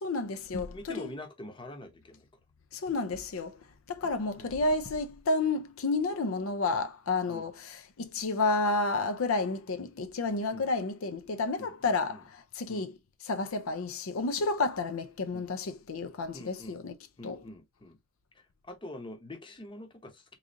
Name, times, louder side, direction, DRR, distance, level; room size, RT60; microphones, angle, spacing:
voice 1, 0.0-1.1 2.7-12.2 12.6-12.9 13.3-16.9 17.2-17.4, left 3 dB, 85° left, 0.5 m, -31 dB
voice 2, 0.5-2.3 4.4-4.6 7.3-7.5 10.5-10.7 11.6-12.2 12.7-12.9 15.3-15.5 16.3-16.8 17.2-18.0 18.3-20.4, left 1 dB, 25° left, 0.8 m, -45 dB
3.7 x 3.2 x 2.6 m
head